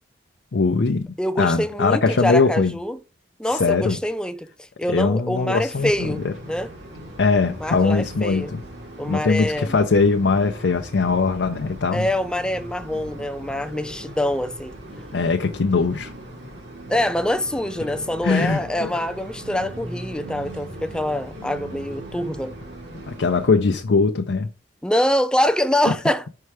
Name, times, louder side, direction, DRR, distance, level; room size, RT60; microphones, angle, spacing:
voice 1, 0.5-2.8 3.5-4.0 4.9-6.3 7.2-8.6 9.1-12.1 15.1-16.1 18.2-18.9 23.1-24.5, left 4 dB, 80° left, 0.6 m, -21 dB
voice 2, 1.2-3.0 3.4-6.7 7.6-8.5 9.0-9.8 11.9-14.8 16.9-22.5 24.8-26.2, left 1 dB, 5° left, 0.5 m, -25 dB
sound 1, 5.7-23.5, equal, 70° right, 2.2 m, -38 dB
5.5 x 4.5 x 4.8 m
head